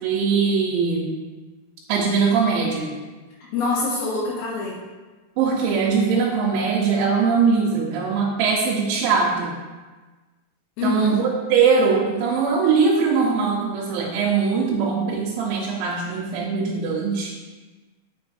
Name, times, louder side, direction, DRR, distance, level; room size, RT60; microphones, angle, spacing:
voice 1, 0.0-1.1 1.9-3.0 5.4-9.6 10.8-17.3, right 5 dB, 85° right, -4 dB, 3.1 m, -21 dB
voice 2, 3.5-4.8 10.8-11.2, left 4 dB, 75° left, -4 dB, 2.3 m, -25 dB
8.3 x 5.4 x 2.6 m, 1.3 s
omnidirectional pair, 5.1 m